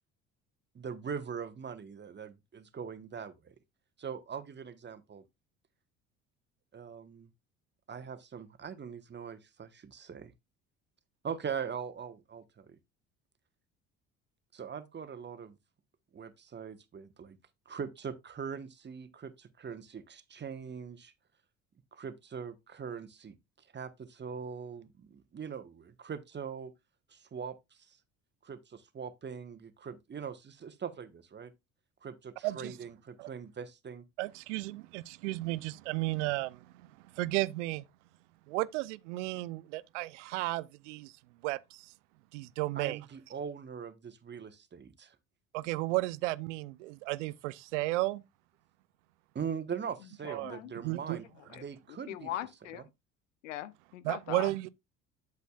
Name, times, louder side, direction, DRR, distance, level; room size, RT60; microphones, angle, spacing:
voice 1, 0.7-3.5 4.0-5.2 6.7-7.3 7.9-10.3 11.2-12.8 14.5-15.6 16.1-17.4 17.7-21.1 21.9-23.4 23.7-26.7 27.1-27.6 27.9-28.0 28.4-31.5 32.0-34.0 42.7-45.1 49.3-52.3, right 7 dB, 30° right, 1.1 m, -41 dB
voice 2, 32.4-32.8 33.2-33.3 34.2-37.8 38.5-41.1 41.4-41.9 42.3-43.0 45.5-48.2 50.3-50.5 50.8-51.2 54.0-54.7, right 20 dB, 80° right, 0.5 m, -34 dB
voice 3, 50.2-50.7 51.5-51.6 51.9-52.8 53.4-54.5, left 13 dB, 85° left, 0.7 m, -41 dB
8.1 x 8.0 x 2.3 m
hypercardioid pair, 60°, 36 cm